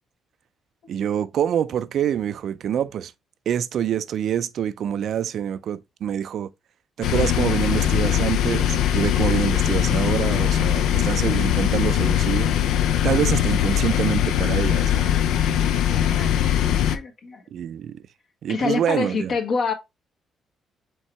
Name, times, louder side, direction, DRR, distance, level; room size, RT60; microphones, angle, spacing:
voice 1, 0.9-3.1 3.5-6.5 7.0-12.5 13.0-15.2 17.5-18.0 18.4-19.3, right 9 dB, 65° right, 0.3 m, -26 dB
sound 1, 7.0-17.0, left 10 dB, 85° left, 0.4 m, -21 dB
voice 2, 15.9-16.6 16.9-17.4 18.5-19.7, left 5 dB, 55° left, 1.1 m, -27 dB
4.5 x 3.6 x 3.0 m
cardioid pair, 90°, 0 cm